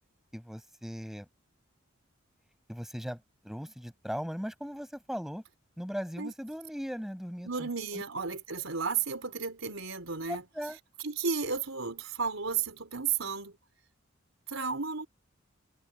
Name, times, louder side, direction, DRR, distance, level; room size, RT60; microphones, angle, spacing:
voice 1, 0.3-1.3 2.7-5.4 5.8-7.7 7.9-8.0 10.3-10.8, equal, ahead, 7.3 m, -38 dB
voice 2, 7.4-10.4 11.0-13.5 14.5-15.1, right 5 dB, 80° right, 4.2 m, -33 dB
head